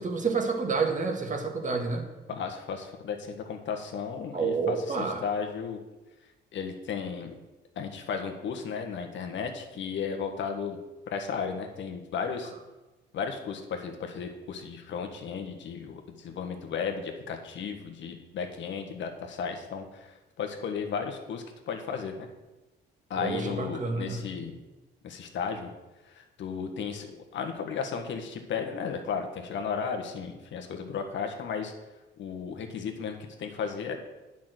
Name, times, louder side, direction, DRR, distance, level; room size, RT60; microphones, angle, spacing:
voice 1, 0.0-2.0 4.3-5.2 23.2-24.2, right 4 dB, 40° right, 3 dB, 1.8 m, -29 dB
voice 2, 2.3-5.8 6.5-7.3 7.7-10.8 11.1-12.5 13.1-20.1 20.4-22.1 23.1-24.6 25.0-25.7 26.2-31.7 32.2-34.0, left 6 dB, 70° left, 4 dB, 1.5 m, -34 dB
8.7 x 6.1 x 7.8 m, 1.1 s
cardioid pair, 90°, 20 cm